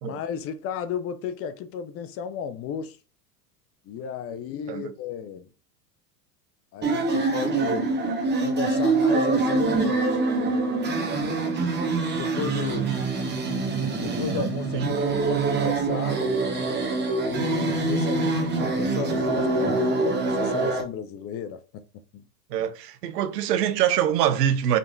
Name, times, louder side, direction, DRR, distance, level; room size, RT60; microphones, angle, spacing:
voice 1, 0.0-3.0 3.9-5.5 6.7-8.0 8.4-10.1 12.1-13.0 14.0-16.2 17.2-22.2, left 7 dB, 30° left, 0.5 m, -34 dB
sound 1, 6.8-20.8, right 3 dB, 20° right, 1.2 m, -25 dB
voice 2, 22.5-24.8, right 10 dB, 80° right, 0.8 m, -24 dB
5.1 x 3.4 x 2.6 m
hypercardioid pair, 105°, 48 cm